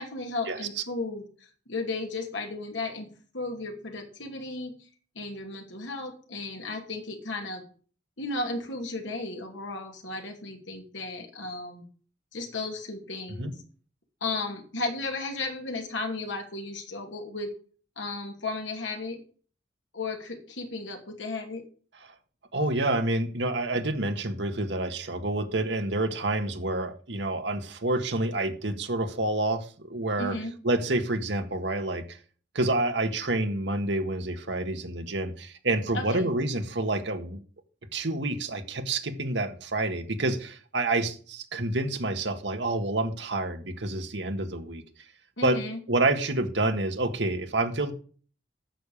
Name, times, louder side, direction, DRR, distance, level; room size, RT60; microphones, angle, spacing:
voice 1, 0.0-3.1 3.3-4.9 5.1-7.6 8.2-11.8 12.3-13.6 14.2-17.5 18.0-19.2 19.9-21.6 30.2-30.5 35.9-36.3 45.4-45.8, left 3 dB, 80° left, 3 dB, 2.7 m, -34 dB
voice 2, 22.5-30.4 30.6-32.2 32.5-37.4 37.9-44.8 45.4-45.6 45.9-47.9, right 2 dB, 70° right, 6 dB, 1.6 m, -28 dB
10.0 x 6.8 x 7.2 m, 0.42 s
head